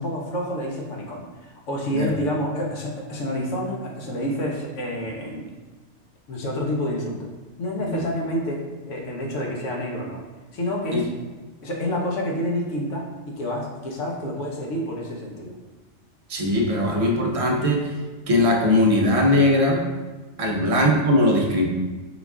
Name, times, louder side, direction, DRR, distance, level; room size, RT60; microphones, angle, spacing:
voice 1, 0.0-5.5 6.3-7.3 7.6-10.2 10.5-11.1 11.6-15.6 20.6-20.7, equal, 75° left, -1 dB, 1.1 m, -28 dB
voice 2, 16.3-18.0 18.3-19.8 20.4-21.6, left 1 dB, 50° right, 0 dB, 0.4 m, -20 dB
3.9 x 2.4 x 3.5 m, 1.3 s
omnidirectional pair, 1.3 m